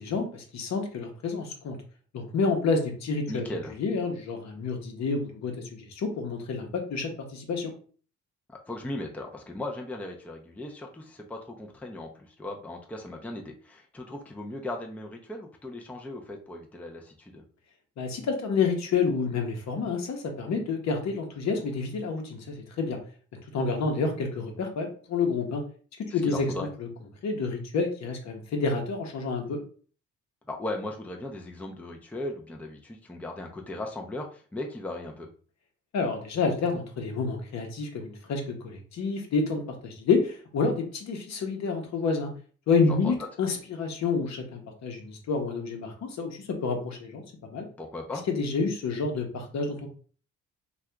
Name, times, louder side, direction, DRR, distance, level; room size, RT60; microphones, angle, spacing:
voice 1, 0.0-1.8 2.1-3.5 3.8-7.7 18.0-23.0 23.5-25.6 26.0-26.5 26.8-26.9 27.2-29.6 35.9-42.3 42.7-47.7 48.3-49.9, left 4 dB, 65° left, 3 dB, 0.9 m, -29 dB
voice 2, 3.3-3.7 8.5-17.4 26.1-26.7 30.5-35.3 42.9-43.2 47.8-48.2, left 2 dB, 5° left, 1 dB, 0.5 m, -37 dB
2.7 x 2.4 x 3.4 m, 0.42 s
cardioid pair, 90°, 30 cm